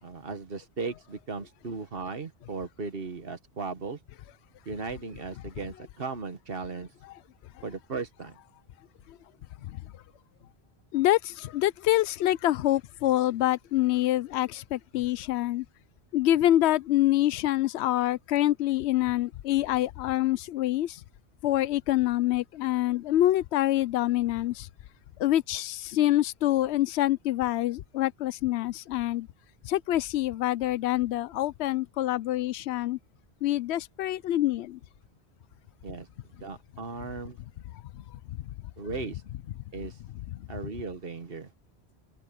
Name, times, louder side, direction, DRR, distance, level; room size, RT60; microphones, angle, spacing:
voice 1, 0.0-4.0 4.6-6.9 7.6-8.4 35.8-37.4 38.8-39.2 39.7-40.0 40.5-41.5, right 4 dB, 60° right, 1.5 m, -37 dB
voice 2, 10.9-15.6 16.1-21.0 21.4-24.7 25.2-29.3 29.6-33.0 33.4-34.8, left 14 dB, 80° left, 0.8 m, -26 dB
open air
omnidirectional pair, 1.1 m